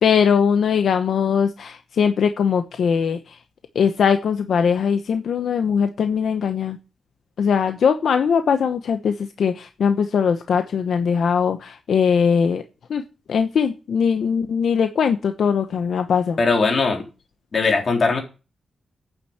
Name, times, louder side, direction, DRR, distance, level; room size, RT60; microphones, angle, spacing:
voice 1, 0.0-3.4 3.7-6.8 7.4-12.6 12.9-13.0 13.3-16.4, left 6 dB, 75° left, 7 dB, 0.9 m, -20 dB
voice 2, 16.4-17.0 17.5-18.2, left 4 dB, 45° left, 2 dB, 3.7 m, -19 dB
9.1 x 7.3 x 8.0 m, 0.32 s
wide cardioid pair, 120°, 0 cm